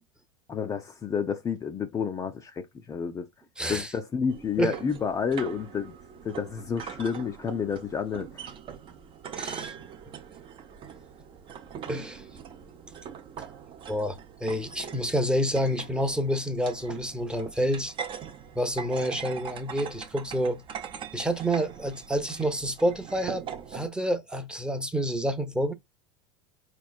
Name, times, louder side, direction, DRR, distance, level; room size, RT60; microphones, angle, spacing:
voice 1, 0.5-3.3 3.7-5.9 6.2-8.5, left 6 dB, 25° left, 0.4 m, -30 dB
voice 2, 3.6-3.9 4.6-4.7 9.4-9.7 11.9-12.2 13.9-17.9 18.6-20.6 21.1-23.4 23.7-25.7, equal, 5° right, 0.7 m, -28 dB
sound 1, 4.3-23.9, right 7 dB, 40° right, 0.7 m, -42 dB
4.3 x 3.1 x 2.3 m
hypercardioid pair, 90°, 14 cm